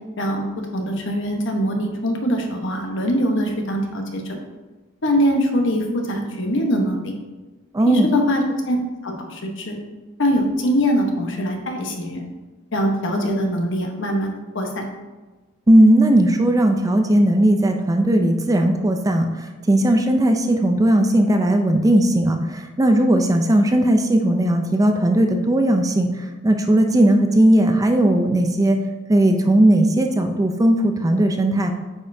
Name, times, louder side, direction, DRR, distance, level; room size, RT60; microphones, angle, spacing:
voice 1, 0.2-4.4 5.0-7.1 7.9-8.8 9.0-9.8 10.2-12.2 12.7-14.8, equal, 65° left, 2 dB, 1.1 m, -22 dB
voice 2, 7.7-8.1 15.7-28.8 29.1-31.7, right 1 dB, 15° right, 5 dB, 0.4 m, -17 dB
8.5 x 5.3 x 2.7 m, 1.2 s
head